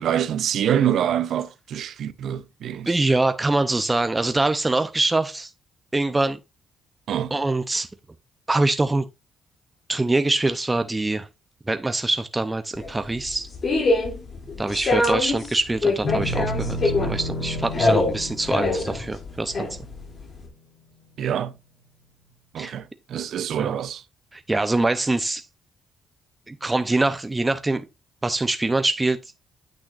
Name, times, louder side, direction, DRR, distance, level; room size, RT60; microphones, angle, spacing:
voice 1, 0.0-2.9 7.1-7.3 21.2-21.5 22.5-24.0, right 9 dB, 70° right, 0.6 m, -25 dB
voice 2, 2.9-5.5 5.9-6.4 7.3-7.9 8.5-9.1 9.9-11.3 11.7-13.5 14.6-19.9 22.6-22.7 23.6-23.8 24.3-25.5 26.5-27.8 28.2-29.2, right 2 dB, 15° right, 0.6 m, -24 dB
sound 1, 12.8-20.5, left 2 dB, 45° left, 2.7 m, -24 dB
sound 2, 16.0-20.5, equal, 70° left, 4.1 m, -32 dB
8.8 x 6.3 x 2.5 m
cardioid pair, 90°, 0 cm